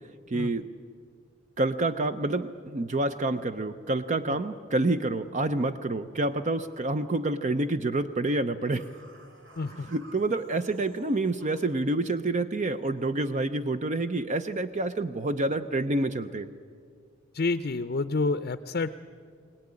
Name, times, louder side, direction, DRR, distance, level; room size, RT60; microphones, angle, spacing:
voice 1, 0.3-0.7 1.6-8.9 9.9-16.5, right 2 dB, 40° right, 10 dB, 0.6 m, -28 dB
sound 1, 8.8-11.8, right 2 dB, 75° right, 2.8 m, -52 dB
voice 2, 9.6-9.9 17.3-18.9, left 3 dB, 50° left, 11 dB, 0.6 m, -29 dB
22.5 x 18.5 x 9.7 m, 2.2 s
head